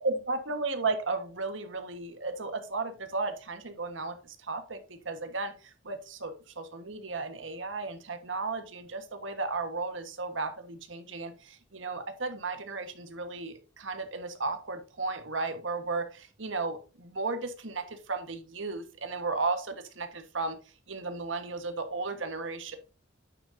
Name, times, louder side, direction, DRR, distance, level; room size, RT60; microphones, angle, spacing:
voice 1, 0.0-20.6 20.9-22.8, right 3 dB, 90° right, 8 dB, 1.4 m, -34 dB
9.1 x 7.6 x 2.7 m, 0.34 s
head